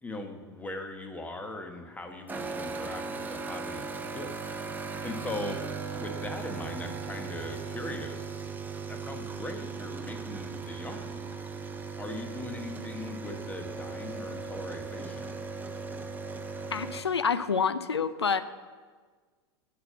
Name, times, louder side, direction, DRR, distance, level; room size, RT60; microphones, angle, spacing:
voice 1, 0.0-4.3 5.0-5.6 6.0-8.4 8.9-11.2 12.0-15.3, left 2 dB, 10° left, 5 dB, 1.3 m, -40 dB
sound 1, 2.3-17.0, right 5 dB, 15° right, 0.8 m, -38 dB
voice 2, 16.7-18.4, left 6 dB, 85° left, 13 dB, 0.5 m, -27 dB
8.7 x 6.9 x 7.7 m, 1.5 s
figure-of-eight pair, 90°, 14 cm